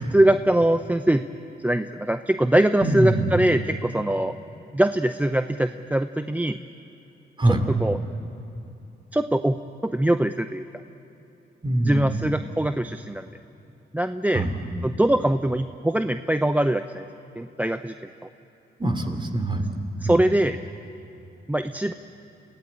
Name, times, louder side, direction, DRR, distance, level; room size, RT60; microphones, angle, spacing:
voice 1, 0.1-1.2 1.6-4.4 4.7-6.6 7.5-8.0 9.1-9.6 9.8-10.6 11.8-13.3 13.9-14.4 14.8-17.1 17.4-17.9 20.0-20.6 21.5-21.9, right 1 dB, 10° right, 9 dB, 0.6 m, -22 dB
voice 2, 2.8-3.3 7.4-7.6 11.6-12.0 14.3-14.8 18.8-19.7 20.0-20.2, right 1 dB, 25° right, 6 dB, 3.0 m, -24 dB
27.0 x 16.0 x 8.9 m, 2.9 s
cardioid pair, 70°, 18 cm